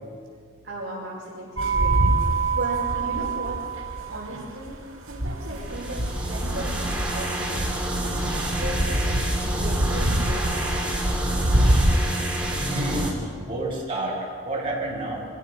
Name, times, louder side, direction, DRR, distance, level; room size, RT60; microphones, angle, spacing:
voice 1, 0.6-3.6 4.1-8.2 8.6-9.1 9.4-11.7, right 1 dB, 55° right, -8 dB, 5.3 m, -36 dB
sound 1, 1.6-12.1, right 2 dB, 75° right, 4.2 m, -25 dB
sound 2, 5.5-13.1, right 1 dB, 5° right, 3.4 m, -28 dB
voice 2, 12.5-15.3, right 1 dB, 25° right, -5 dB, 7.3 m, -29 dB
25.5 x 16.5 x 7.0 m, 2.1 s
head